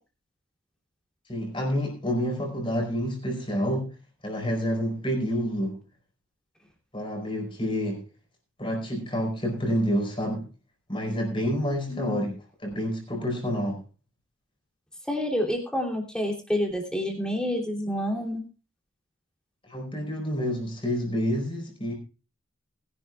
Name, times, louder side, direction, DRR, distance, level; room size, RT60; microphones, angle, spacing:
voice 1, 1.3-3.9 4.2-5.8 6.9-8.0 8.6-10.5 10.9-12.3 12.6-13.8 19.6-21.9, equal, 25° left, 2 dB, 4.4 m, -28 dB
voice 2, 11.9-12.3 15.1-18.4, left 1 dB, 5° left, 1 dB, 3.0 m, -28 dB
21.0 x 11.5 x 2.4 m, 0.31 s
head